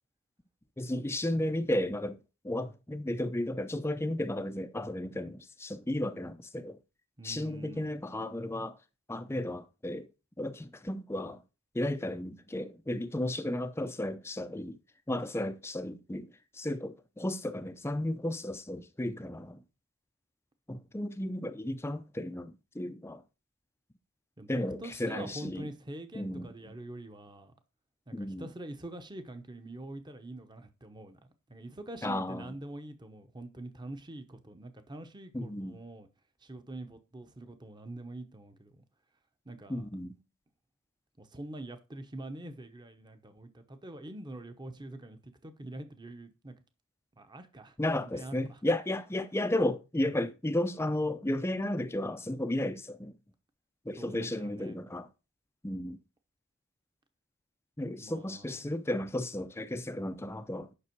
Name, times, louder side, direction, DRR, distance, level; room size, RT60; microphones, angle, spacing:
voice 1, 0.8-2.2 2.4-6.8 7.2-8.8 9.1-10.1 10.4-11.4 11.7-14.8 15.1-16.3 16.5-19.6 20.7-23.2 24.5-25.7 26.1-26.5 28.1-28.5 32.0-32.6 35.3-35.8 39.7-40.2 47.8-53.1 53.9-55.1 55.6-56.0 57.8-60.7, left 1 dB, 10° left, 0.5 m, -33 dB
voice 2, 7.2-8.0 24.4-27.5 28.1-31.2 31.5-36.1 36.4-38.8 39.4-39.9 40.1-40.2 41.2-46.5 47.2-48.6 54.0-54.8 58.0-58.6, right 1 dB, 20° right, 0.9 m, -45 dB
9.8 x 6.1 x 4.6 m
head